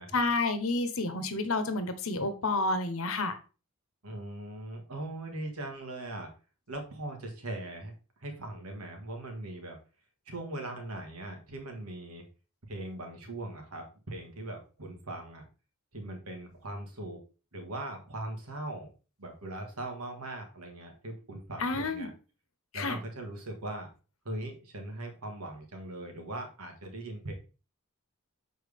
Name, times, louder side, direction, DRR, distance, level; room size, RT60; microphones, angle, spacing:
voice 1, 0.1-3.4 21.6-22.1 22.7-23.0, left 3 dB, 65° left, 9 dB, 1.0 m, -30 dB
voice 2, 4.0-6.3 6.7-7.9 8.2-9.8 10.3-12.2 12.7-15.5 15.9-17.2 17.5-18.9 19.2-22.1 22.7-23.9 24.3-27.3, right 1 dB, 85° right, 3 dB, 1.8 m, -40 dB
6.6 x 4.6 x 3.5 m, 0.34 s
head